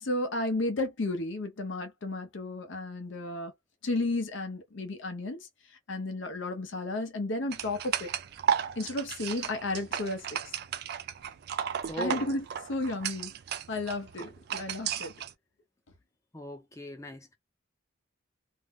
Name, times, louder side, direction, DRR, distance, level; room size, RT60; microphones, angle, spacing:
voice 1, 0.0-3.5 3.8-5.4 5.9-8.1 8.8-10.4 12.0-13.3 13.7-15.1, left 2 dB, 65° left, 0.7 m, -33 dB
sound 1, 7.5-15.3, right 8 dB, 50° right, 0.3 m, -34 dB
voice 2, 11.9-12.2 16.3-17.3, right 1 dB, 15° left, 0.6 m, -39 dB
2.6 x 2.1 x 3.4 m
head